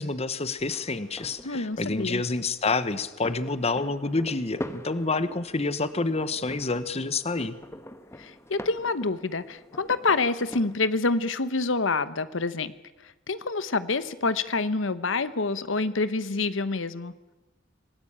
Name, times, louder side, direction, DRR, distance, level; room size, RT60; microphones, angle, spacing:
voice 1, 0.0-7.5, left 3 dB, 35° left, 13 dB, 1.0 m, -28 dB
sound 1, 0.6-10.8, left 1 dB, 15° left, 1.2 m, -44 dB
voice 2, 1.4-2.2 8.2-12.7 13.3-17.1, left 3 dB, 75° left, 14 dB, 1.0 m, -27 dB
26.0 x 18.5 x 8.8 m, 1.1 s
head